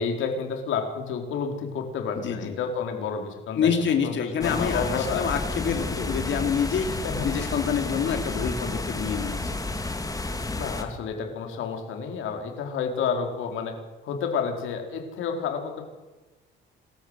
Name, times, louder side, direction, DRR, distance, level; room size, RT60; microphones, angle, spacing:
voice 1, 0.0-5.2 6.0-6.1 6.9-7.3 10.3-13.7 14.0-15.9, left 6 dB, 85° left, 4 dB, 4.5 m, -30 dB
voice 2, 2.2-2.5 3.6-6.9 7.2-9.6, left 7 dB, 70° left, 5 dB, 3.2 m, -27 dB
sound 1, 4.4-10.8, left 2 dB, 15° left, 3.3 m, -31 dB
26.5 x 14.0 x 8.3 m, 1.2 s
cardioid pair, 90°, 20 cm